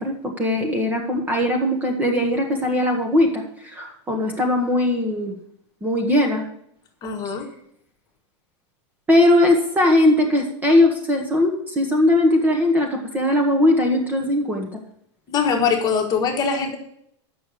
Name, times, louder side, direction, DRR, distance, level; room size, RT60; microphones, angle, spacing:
voice 1, 0.0-5.3 5.8-6.4 7.2-7.3 9.1-14.7, left 1 dB, 10° right, 2 dB, 1.2 m, -19 dB
voice 2, 7.0-7.5 15.3-16.8, left 6 dB, 25° left, 3 dB, 1.5 m, -22 dB
8.6 x 6.2 x 8.2 m, 0.71 s
supercardioid pair, 155°, 15 cm